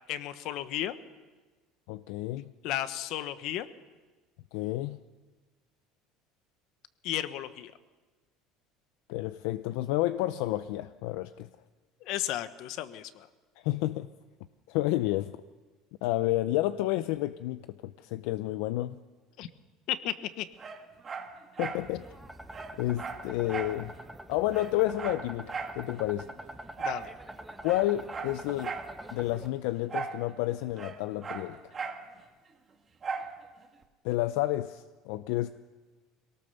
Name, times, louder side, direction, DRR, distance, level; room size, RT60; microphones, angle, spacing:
voice 1, 0.1-0.9 2.6-3.7 7.0-7.7 12.0-13.3 19.4-19.5 19.9-20.5 26.8-27.1, left 12 dB, 60° left, 12 dB, 1.1 m, -34 dB
voice 2, 1.9-2.5 4.5-5.0 9.1-11.5 13.6-14.1 14.7-15.3 16.0-19.0 21.6-22.1 22.8-23.9 24.3-26.3 27.6-28.8 29.1-31.6 34.0-35.5, left 15 dB, 80° left, 12 dB, 0.6 m, -30 dB
Dog, 20.6-21.9 22.2-22.3 22.5-23.8 24.1-24.2 24.5-25.8 26.8-27.1 27.6-28.9 29.9-30.2 30.5-32.0 33.0-33.3 33.8-33.9, right 5 dB, 25° right, 1.9 m, -37 dB
sound 1, 21.7-29.5, right 1 dB, 5° right, 1.1 m, -45 dB
22.5 x 18.0 x 6.9 m, 1.3 s
cardioid pair, 140°, 0 cm